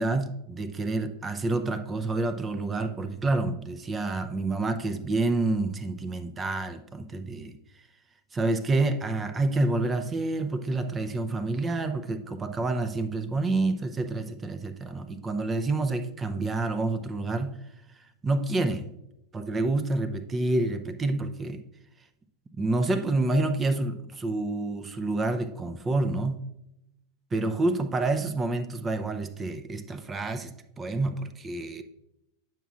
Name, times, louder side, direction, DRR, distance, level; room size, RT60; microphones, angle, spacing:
voice 1, 0.0-7.5 8.3-17.5 18.2-18.9 19.3-21.6 22.6-26.4 27.3-30.5 30.8-31.8, right 2 dB, 20° right, 10 dB, 0.6 m, -28 dB
9.0 x 5.9 x 2.4 m, 0.84 s
figure-of-eight pair, 90°, 0 cm